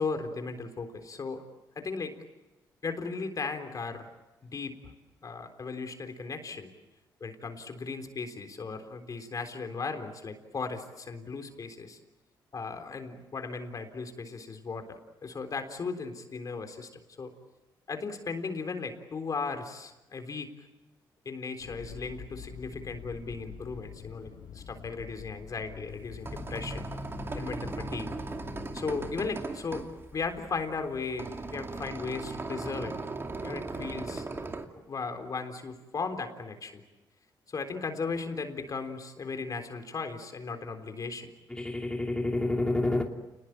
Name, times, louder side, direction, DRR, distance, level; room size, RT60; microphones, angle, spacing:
voice 1, 0.0-1.4 1.8-2.1 2.8-4.1 4.4-4.8 5.2-6.7 7.2-12.0 12.5-16.9 17.2-17.3 17.9-20.5 21.3-26.8 27.3-28.1 28.7-29.9 30.1-33.0 33.4-34.3 34.8-36.8 37.5-41.3, left 4 dB, 45° left, 7 dB, 3.8 m, -36 dB
sound 1, 21.6-29.3, left 7 dB, 85° left, 5.1 m, -45 dB
sound 2, 25.9-34.6, right 3 dB, 30° right, 2.5 m, -38 dB
voice 2, 41.5-43.0, left 2 dB, 10° left, 1 dB, 2.8 m, -28 dB
29.0 x 20.5 x 9.0 m, 1.1 s
cardioid pair, 80°, 8 cm